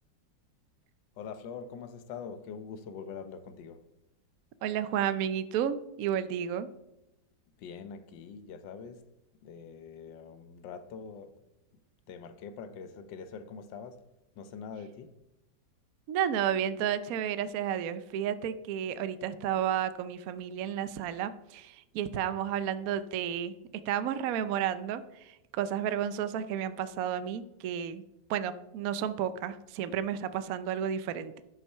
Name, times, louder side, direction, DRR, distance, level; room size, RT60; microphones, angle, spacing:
voice 1, 1.2-3.8 7.6-9.0 9.4-11.3 12.1-14.0 14.4-15.1, left 6 dB, 80° left, 1.5 m, -44 dB
voice 2, 4.6-6.7 16.1-23.5 23.9-28.0 28.3-31.4, right 9 dB, 65° right, 0.9 m, -32 dB
11.5 x 6.0 x 5.5 m
omnidirectional pair, 2.0 m